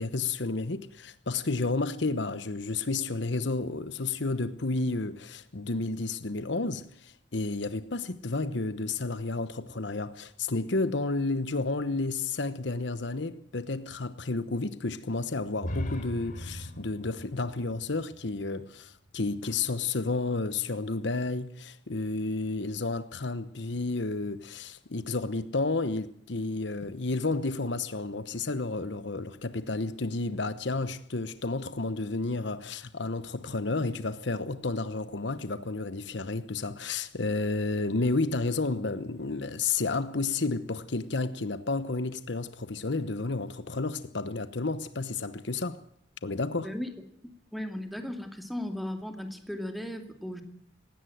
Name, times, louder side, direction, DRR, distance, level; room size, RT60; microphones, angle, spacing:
voice 1, 0.0-45.8 46.2-46.7, left 3 dB, 65° left, 1.0 m, -31 dB
sound 1, 15.6-19.4, left 1 dB, 45° left, 3.2 m, -39 dB
voice 2, 46.6-46.9 47.5-50.4, left 1 dB, ahead, 2.5 m, -36 dB
19.0 x 17.0 x 9.3 m
head